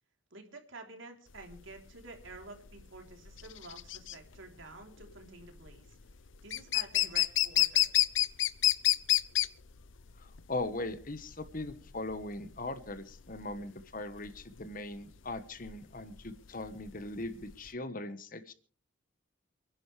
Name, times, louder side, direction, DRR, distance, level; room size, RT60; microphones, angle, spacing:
voice 1, 0.3-5.9 6.4-7.9, right 2 dB, 90° right, 3 dB, 3.5 m, -50 dB
sound 1, 1.3-17.7, left 14 dB, 80° left, 0.7 m, -30 dB
voice 2, 10.2-18.5, left 2 dB, 45° left, 11 dB, 1.3 m, -40 dB
28.5 x 10.5 x 3.4 m, 0.43 s
head